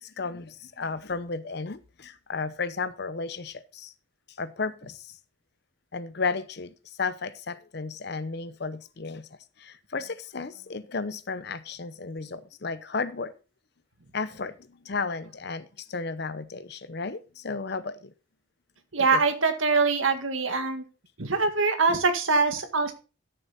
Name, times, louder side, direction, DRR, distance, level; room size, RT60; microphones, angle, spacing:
voice 1, 0.0-3.9 4.4-5.0 5.9-6.7 7.0-9.3 9.6-13.3 14.1-14.5 14.8-18.1 19.1-19.2, left 4 dB, 55° left, 0.8 m, -33 dB
voice 2, 18.9-20.8 21.2-22.9, right 4 dB, 85° right, 1.9 m, -23 dB
13.0 x 6.9 x 4.1 m
head